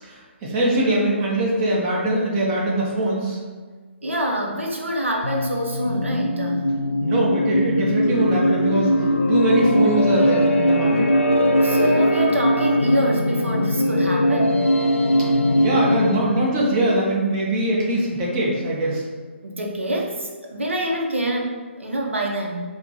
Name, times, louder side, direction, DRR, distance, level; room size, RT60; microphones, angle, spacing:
voice 1, 0.0-3.4 7.0-8.9 9.3-11.1 15.5-19.0, right 1 dB, 20° right, -4 dB, 0.6 m, -22 dB
voice 2, 4.0-6.7 11.6-14.6 19.4-22.6, right 1 dB, 75° right, 0 dB, 0.6 m, -26 dB
sound 1, 5.2-16.6, equal, 80° left, 0.4 m, -20 dB
4.1 x 2.1 x 2.7 m, 1.5 s
figure-of-eight pair, 140°, 7 cm